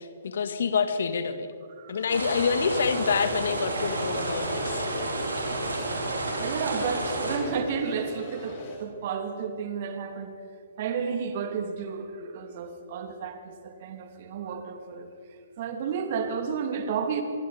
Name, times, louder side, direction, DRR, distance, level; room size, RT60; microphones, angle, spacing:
voice 1, 0.0-1.5 1.9-4.9, left 6 dB, 65° left, 10 dB, 1.9 m, -27 dB
sound 1, 2.1-7.4, right 2 dB, 80° right, 4.9 m, -31 dB
sound 2, 3.4-8.8, left 3 dB, 40° left, 4.6 m, -40 dB
voice 2, 6.4-10.3 10.8-15.1 15.6-17.2, right 6 dB, 50° right, 6 dB, 2.8 m, -32 dB
25.5 x 23.0 x 5.1 m, 2.3 s
figure-of-eight pair, 125°, 0 cm